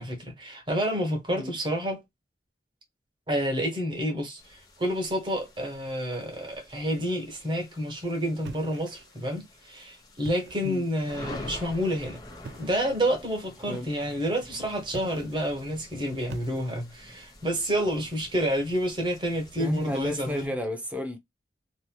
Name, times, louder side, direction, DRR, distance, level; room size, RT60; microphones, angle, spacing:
voice 1, 0.0-2.0 3.3-12.2 12.6-20.5, equal, 25° right, 1.2 m, -29 dB
sound 1, 4.4-20.5, left 1 dB, 20° left, 1.0 m, -48 dB
sound 2, 8.4-9.3 10.1-10.8 12.4-12.9 14.9-15.5 16.3-17.0, right 4 dB, 75° right, 0.4 m, -43 dB
voice 2, 19.6-21.2, left 1 dB, 10° right, 0.6 m, -32 dB
2.9 x 2.9 x 2.2 m
head